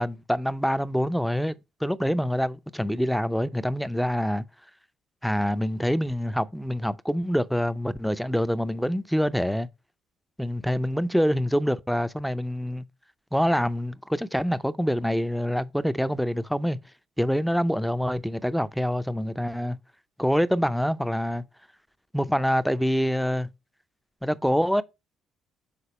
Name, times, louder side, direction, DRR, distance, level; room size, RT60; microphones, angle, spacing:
voice 1, 0.0-4.4 5.2-9.7 10.4-12.8 13.3-16.8 17.2-19.8 20.2-21.4 22.1-23.5 24.2-24.8, equal, ahead, 0.5 m, -26 dB
6.8 x 4.0 x 4.2 m
supercardioid pair, 65°, 0 cm